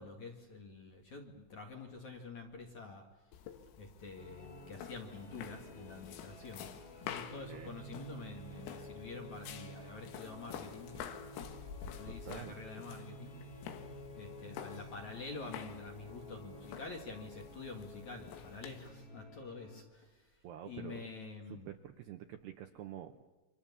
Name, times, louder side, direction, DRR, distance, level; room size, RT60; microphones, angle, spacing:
voice 1, 0.0-3.0 3.8-6.7 7.0-11.1 11.5-13.4 14.1-20.4 20.6-21.7, left 3 dB, 50° left, 2 dB, 2.6 m, -48 dB
sound 1, 3.3-18.9, left 9 dB, 85° left, 4.3 m, -49 dB
sound 2, 4.1-19.8, equal, 25° left, 2.7 m, -52 dB
voice 2, 12.1-12.5 20.4-21.1 21.5-23.2, right 11 dB, 75° right, 6 dB, 2.5 m, -47 dB
29.5 x 25.0 x 7.0 m, 1.2 s
omnidirectional pair, 5.9 m